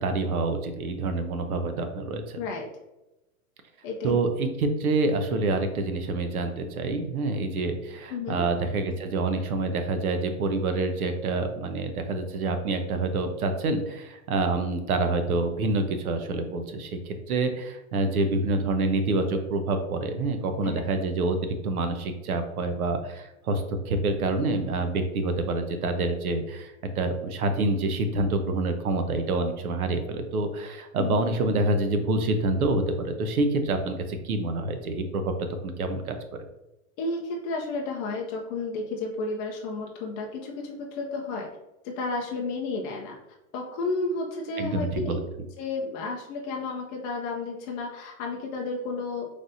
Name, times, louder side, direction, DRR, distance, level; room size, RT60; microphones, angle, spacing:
voice 1, 0.0-2.4 4.0-35.3 35.6-36.4 44.6-45.2, right 2 dB, 85° right, 7 dB, 0.9 m, -27 dB
voice 2, 2.4-2.7 3.8-4.2 8.1-8.4 20.6-20.8 31.0-31.2 37.0-41.5 41.8-43.2 43.5-45.2 45.6-49.2, left 3 dB, 25° left, 0 dB, 0.4 m, -32 dB
5.3 x 3.3 x 2.6 m, 0.96 s
hypercardioid pair, 125°, 43 cm